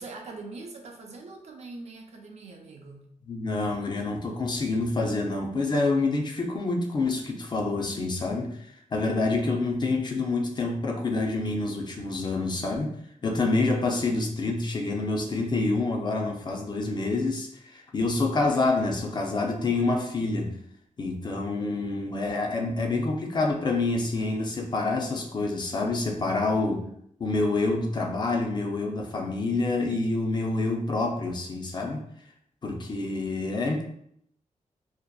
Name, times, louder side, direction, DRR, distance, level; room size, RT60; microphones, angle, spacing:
voice 1, 0.0-3.0, right 3 dB, 60° right, 2 dB, 0.5 m, -42 dB
voice 2, 3.3-8.6 8.9-12.9 13.2-20.5 21.0-26.8 27.2-32.0 32.6-33.8, left 3 dB, 35° left, 1 dB, 0.4 m, -27 dB
2.6 x 2.1 x 2.3 m, 0.70 s
wide cardioid pair, 120°, 13 cm